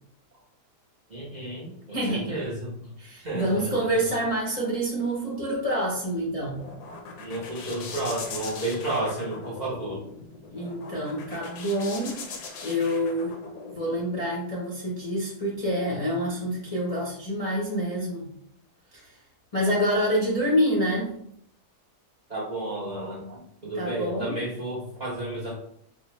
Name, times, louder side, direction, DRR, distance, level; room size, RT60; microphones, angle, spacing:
voice 1, 1.1-2.9 3.2-3.7 7.2-10.0 22.3-25.5, right 1 dB, 65° right, -6 dB, 0.4 m, -32 dB
voice 2, 1.9-2.4 3.0-6.6 10.5-12.2 12.6-13.3 13.7-18.2 18.9-19.1 19.5-21.1 23.8-24.4, equal, 45° left, -6 dB, 0.4 m, -27 dB
sound 1, 6.2-14.0, left 4 dB, 75° left, 1.2 m, -40 dB
4.3 x 2.0 x 3.0 m, 0.71 s
omnidirectional pair, 1.8 m